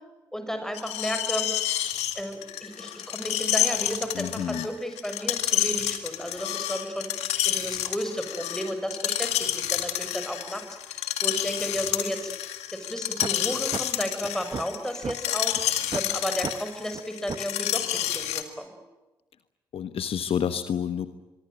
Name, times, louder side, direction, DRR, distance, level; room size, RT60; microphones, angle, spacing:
voice 1, 0.3-1.5 2.1-7.1 7.4-12.3 12.7-18.7, equal, 5° left, 8 dB, 6.7 m, -33 dB
Screech, 0.7-18.4, left 12 dB, 75° left, 2.0 m, -29 dB
voice 2, 4.1-4.7 19.7-21.1, left 8 dB, 60° left, 11 dB, 1.2 m, -29 dB
sound 1, 13.2-13.3 13.7-13.8 14.2-15.2 15.5-15.6 15.9-16.1 16.4-16.5 16.9-17.0 17.3-17.5, right 5 dB, 40° right, 1.2 m, -33 dB
24.0 x 23.5 x 9.3 m, 1.1 s
hypercardioid pair, 45°, 11 cm